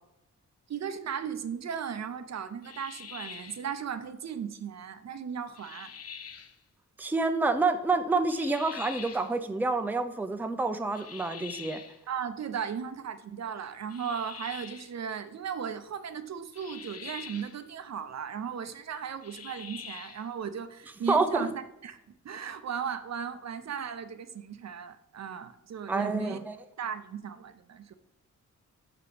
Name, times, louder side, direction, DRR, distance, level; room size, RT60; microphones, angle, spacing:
voice 1, 0.7-5.9 12.1-22.0 22.2-26.4 26.8-27.9, right 7 dB, 60° right, 10 dB, 0.6 m, -36 dB
sound 1, 2.6-3.7 5.6-6.6 8.3-9.3 10.9-12.0 13.9-14.9 16.5-17.6 19.2-20.3, left 7 dB, 55° left, 0.7 m, -44 dB
voice 2, 7.0-11.8 21.1-21.5 25.9-26.5, right 3 dB, 5° right, 8 dB, 0.5 m, -28 dB
5.8 x 5.2 x 4.9 m, 0.86 s
wide cardioid pair, 95°, 31 cm